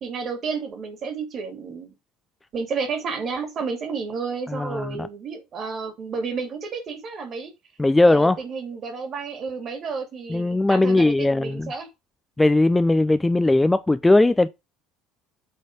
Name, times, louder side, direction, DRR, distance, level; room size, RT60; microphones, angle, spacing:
voice 1, 0.0-1.9 2.5-7.5 8.0-11.9, right 5 dB, 40° right, 2.6 m, -31 dB
voice 2, 4.5-5.1 7.8-8.4 10.3-11.8 12.4-14.5, left 2 dB, 10° left, 0.5 m, -19 dB
8.1 x 4.2 x 4.7 m
figure-of-eight pair, 60°, 0 cm